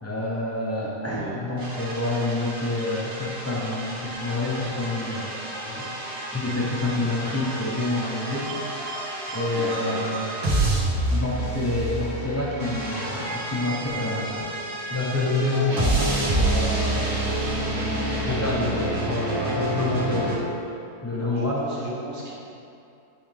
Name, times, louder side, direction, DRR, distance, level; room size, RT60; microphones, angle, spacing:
voice 1, 0.0-5.3 5.6-5.9 6.3-8.5 9.3-10.4 11.1-14.4 14.9-17.2 18.2-20.6 21.0-21.6, left 2 dB, 20° left, -5 dB, 0.3 m, -27 dB
voice 2, 1.0-1.4 9.5-10.0 21.1-22.3, right 2 dB, 50° right, -6 dB, 1.3 m, -34 dB
sound 1, 1.6-20.4, right 1 dB, 75° right, 1.7 m, -28 dB
9.2 x 3.4 x 3.4 m, 2.7 s
omnidirectional pair, 1.7 m